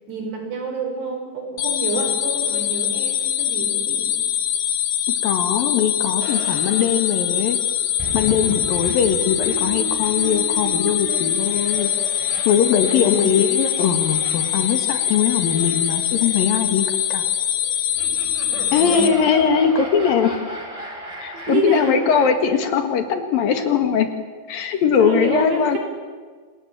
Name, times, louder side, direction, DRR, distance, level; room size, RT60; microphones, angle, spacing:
voice 1, 0.1-4.1 12.9-13.4 18.5-19.1 21.3-22.1 24.6-25.8, right 2 dB, 75° right, 3 dB, 7.1 m, -28 dB
sound 1, 1.6-19.1, left 10 dB, 80° left, 3.8 m, -23 dB
voice 2, 5.2-7.6 8.1-11.9 12.5-17.2 18.7-20.4 21.2-24.1 24.5-25.8, left 7 dB, 65° left, 7 dB, 3.1 m, -20 dB
sound 2, 6.2-22.3, right 2 dB, 10° right, 3.2 m, -35 dB
28.0 x 19.0 x 9.1 m, 1.5 s
omnidirectional pair, 4.9 m